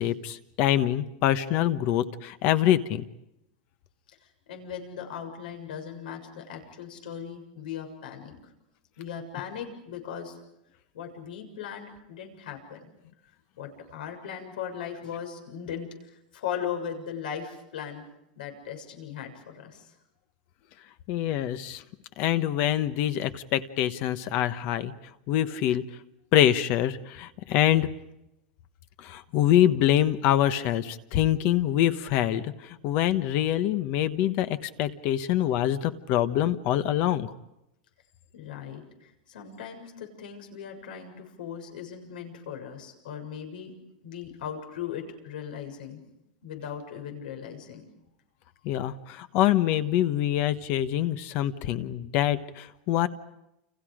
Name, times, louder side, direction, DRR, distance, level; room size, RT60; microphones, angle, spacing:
voice 1, 0.0-3.0 21.1-21.8 22.2-24.9 25.3-25.8 26.3-27.9 29.0-32.5 32.8-37.3 48.6-53.1, left 12 dB, 40° left, 11 dB, 1.2 m, -25 dB
voice 2, 4.5-8.5 9.0-10.4 10.9-12.9 13.6-18.1 18.4-19.8 38.3-43.7 44.0-46.0 46.4-47.9, left 8 dB, 90° left, 4 dB, 7.0 m, -38 dB
30.0 x 28.5 x 5.1 m, 0.85 s
supercardioid pair, 160°, 5 cm